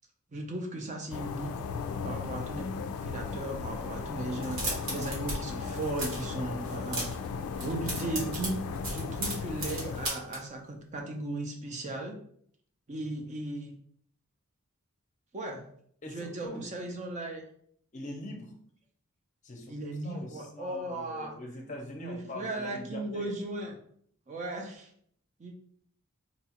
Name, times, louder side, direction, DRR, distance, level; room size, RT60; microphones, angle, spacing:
voice 1, 0.3-1.5 2.0-2.7 3.0-7.1 7.6-8.6 8.8-12.2 12.9-13.7 15.3-15.6 16.1-17.4 19.7-21.3 22.0-23.7 24.3-24.9 25.4-25.5, right 2 dB, 35° right, 2 dB, 0.5 m, -36 dB
sound 1, 1.1-10.1, left 5 dB, 85° left, 0.3 m, -36 dB
sound 2, 4.4-5.4 5.6-6.3 6.6-7.3 7.5-10.4, right 1 dB, 70° right, 1.3 m, -35 dB
voice 2, 16.0-16.7 17.9-18.5 19.4-19.8 20.0-23.3, left 1 dB, 35° left, 2 dB, 0.6 m, -42 dB
3.9 x 2.3 x 2.8 m, 0.63 s
head